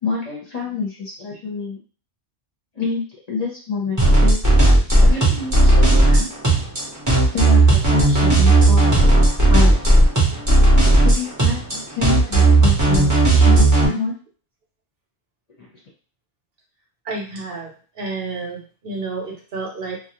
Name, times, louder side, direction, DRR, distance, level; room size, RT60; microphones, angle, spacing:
voice 1, 0.0-1.8 2.8-3.0 3.3-4.4 5.0-6.2 7.3-9.8 10.9-14.1 15.6-15.7, left 4 dB, 40° left, -3 dB, 0.7 m, -27 dB
sound 1, 4.0-13.9, right 2 dB, 20° right, 0.7 m, -14 dB
voice 2, 5.9-6.3 17.0-20.0, right 3 dB, 60° right, -1 dB, 0.9 m, -31 dB
2.4 x 2.0 x 2.8 m, 0.38 s
omnidirectional pair, 1.2 m